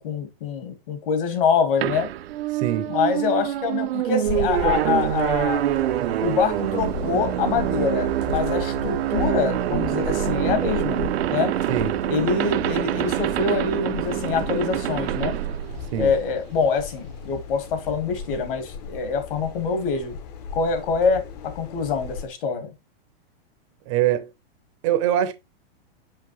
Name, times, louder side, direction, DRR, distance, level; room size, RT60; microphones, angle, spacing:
voice 1, 0.0-2.1 2.9-5.6 6.2-11.5 12.1-15.4 16.0-20.2 20.5-22.7, left 5 dB, 60° left, 1.7 m, -25 dB
sound 1, 1.8-16.4, right 13 dB, 75° right, 0.6 m, -25 dB
voice 2, 2.5-2.9 11.7-12.0 15.9-16.1 23.9-24.3 24.8-25.3, right 11 dB, 30° right, 0.6 m, -23 dB
sound 2, 4.3-22.3, left 5 dB, 40° left, 0.8 m, -35 dB
5.6 x 5.5 x 3.0 m
supercardioid pair, 165°, 31 cm